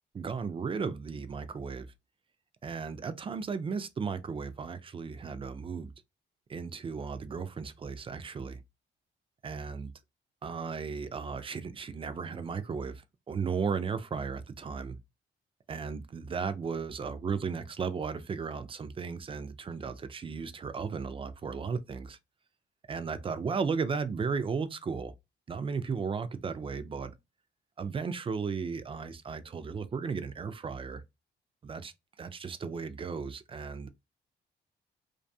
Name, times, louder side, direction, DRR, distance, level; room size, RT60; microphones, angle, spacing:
voice 1, 0.1-1.9 2.6-5.9 6.5-8.6 9.4-9.9 10.4-15.0 15.7-22.2 22.9-25.1 25.5-27.1 27.8-31.0 31.6-31.9 32.2-33.9, right 5 dB, 25° right, 0.4 m, -35 dB
2.5 x 2.3 x 2.6 m
cardioid pair, 90°, 20 cm